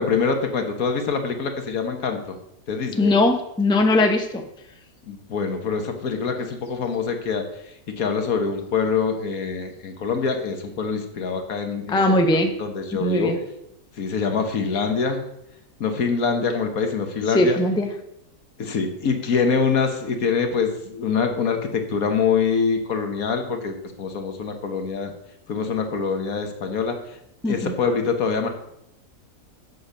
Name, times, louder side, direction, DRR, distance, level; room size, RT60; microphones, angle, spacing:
voice 1, 0.0-2.3 2.7-3.1 5.1-7.4 8.0-12.0 12.6-13.3 14.0-15.2 15.8-17.6 18.6-25.1 25.5-27.0 27.4-28.5, left 5 dB, 65° left, 5 dB, 1.6 m, -24 dB
voice 2, 3.0-4.4 11.9-12.5 13.0-13.4 17.3-17.9 27.4-27.7, left 2 dB, 5° left, 4 dB, 0.7 m, -20 dB
8.1 x 6.6 x 6.6 m, 0.80 s
omnidirectional pair, 1.7 m